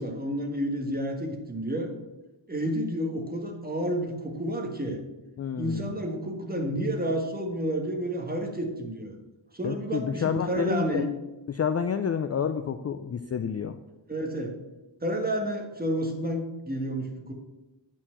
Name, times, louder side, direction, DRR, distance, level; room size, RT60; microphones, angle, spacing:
voice 1, 0.0-1.9 2.5-5.0 5.6-9.1 9.5-11.1 14.1-14.5 15.0-17.3, right 1 dB, 20° right, 3 dB, 1.5 m, -30 dB
voice 2, 5.4-5.9 9.6-11.1 11.5-13.8, left 7 dB, 35° left, 9 dB, 0.4 m, -29 dB
9.0 x 4.4 x 7.3 m, 1.0 s
wide cardioid pair, 135°, 44 cm